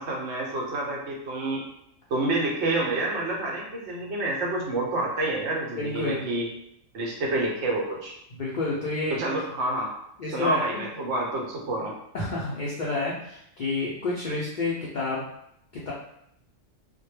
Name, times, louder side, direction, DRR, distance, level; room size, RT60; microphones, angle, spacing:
voice 1, 0.0-1.6 2.1-6.5 6.9-8.2 9.2-9.9 10.3-11.9, right 2 dB, 65° right, -2 dB, 0.8 m, -28 dB
voice 2, 5.8-6.3 8.3-9.4 10.2-10.8 12.1-15.3 15.9-16.0, left 3 dB, 80° left, -5 dB, 0.4 m, -29 dB
2.1 x 2.1 x 3.1 m, 0.76 s
omnidirectional pair, 1.4 m